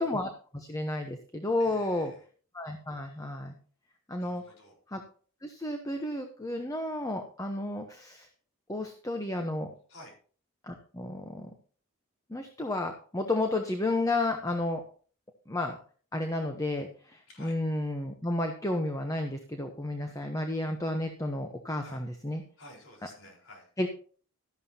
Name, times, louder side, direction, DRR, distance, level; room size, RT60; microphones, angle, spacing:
voice 1, 0.0-2.1 2.5-3.5 4.1-4.4 4.9-5.0 5.4-8.3 8.7-9.7 10.6-11.5 12.3-14.8 15.5-15.8 16.1-22.4 23.8-23.9, left 2 dB, 15° left, 5 dB, 0.9 m, -32 dB
voice 2, 1.6-2.2 4.2-4.8 9.9-10.1 17.3-17.6 21.8-22.0 22.6-23.7, left 1 dB, 80° left, -1 dB, 4.5 m, -51 dB
13.0 x 11.0 x 2.9 m, 0.42 s
head